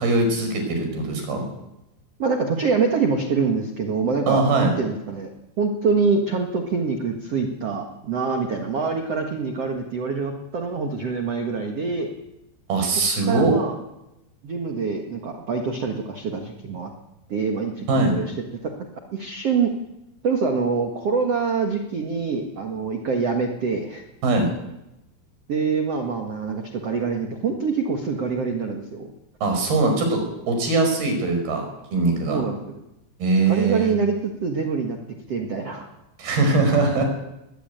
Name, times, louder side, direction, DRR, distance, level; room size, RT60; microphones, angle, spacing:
voice 1, 0.0-1.4 4.3-4.7 12.7-13.5 17.9-18.1 24.2-24.5 29.4-31.7 31.9-32.4 33.2-33.9 36.2-37.0, right 3 dB, 50° right, 4 dB, 6.8 m, -21 dB
voice 2, 2.2-5.3 5.6-12.1 13.2-13.8 14.4-16.9 17.3-18.3 19.1-19.7 20.2-24.0 25.5-29.1 32.3-32.6 33.5-35.0 35.3-35.9, right 5 dB, 80° right, 4 dB, 1.4 m, -25 dB
20.5 x 15.5 x 9.2 m, 0.92 s
omnidirectional pair, 5.6 m